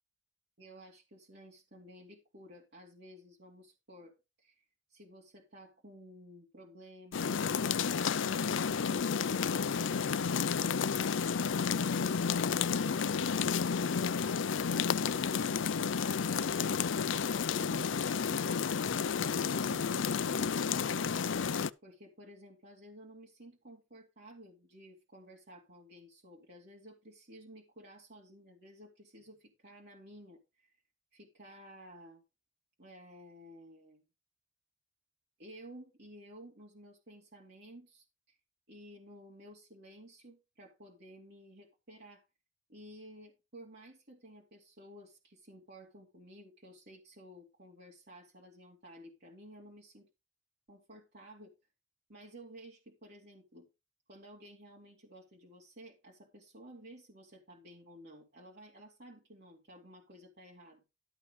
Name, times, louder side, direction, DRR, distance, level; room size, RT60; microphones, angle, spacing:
voice 1, 0.6-10.7 11.2-15.7 16.3-19.0 19.3-21.2 21.8-30.7 31.1-32.2 32.8-34.0 35.4-38.4 38.7-42.2 42.7-50.1 50.7-51.5 52.1-53.7 54.1-60.9, equal, 60° right, -2 dB, 2.6 m, -54 dB
sound 1, 7.1-21.7, left 6 dB, 80° left, 0.5 m, -31 dB
12.5 x 5.7 x 5.2 m, 0.27 s
head